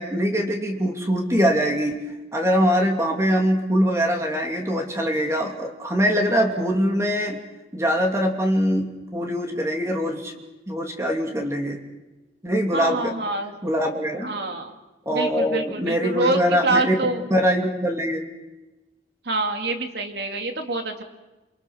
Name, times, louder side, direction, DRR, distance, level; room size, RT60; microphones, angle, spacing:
voice 1, 0.0-2.0 2.3-7.4 7.7-10.3 10.7-11.8 12.4-13.1 13.6-14.3 15.0-16.9 17.3-18.3, equal, 15° right, 2 dB, 2.8 m, -23 dB
voice 2, 12.7-13.5 14.2-14.7 15.1-17.2 19.2-21.0, right 2 dB, 65° right, 5 dB, 2.7 m, -26 dB
28.0 x 24.5 x 6.5 m, 1.1 s
head